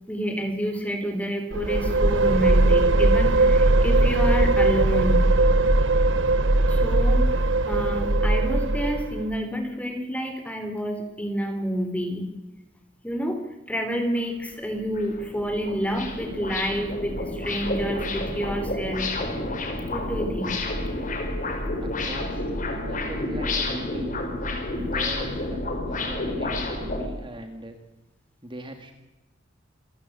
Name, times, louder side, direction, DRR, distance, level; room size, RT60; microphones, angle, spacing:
voice 1, 0.1-5.3 6.7-12.3 13.0-13.4 13.7-19.1 19.9-20.6, equal, 5° left, 5 dB, 3.8 m, -29 dB
sound 1, 1.5-9.4, right 2 dB, 80° right, 1.4 m, -20 dB
sound 2, 14.2-14.3 14.7-27.1, left 2 dB, 45° left, 4.9 m, -30 dB
voice 2, 21.8-24.1 24.8-27.8 28.4-28.9, right 1 dB, 25° right, 5 dB, 2.1 m, -40 dB
27.5 x 15.0 x 8.2 m, 1.1 s
head